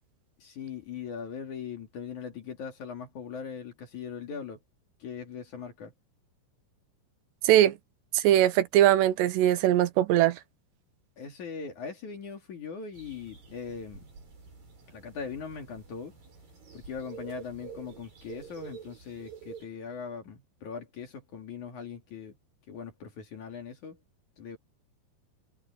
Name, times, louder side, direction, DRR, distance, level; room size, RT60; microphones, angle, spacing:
voice 1, 0.4-4.6 5.0-5.9 11.2-14.1 14.9-16.1 16.7-22.4 22.7-24.0 24.4-24.6, left 6 dB, 50° left, 3.6 m, -40 dB
voice 2, 7.4-7.7 8.1-10.4, right 12 dB, 80° right, 3.1 m, -21 dB
sound 1, 12.9-19.7, right 6 dB, 50° right, 8.9 m, -48 dB
omnidirectional pair, 5.0 m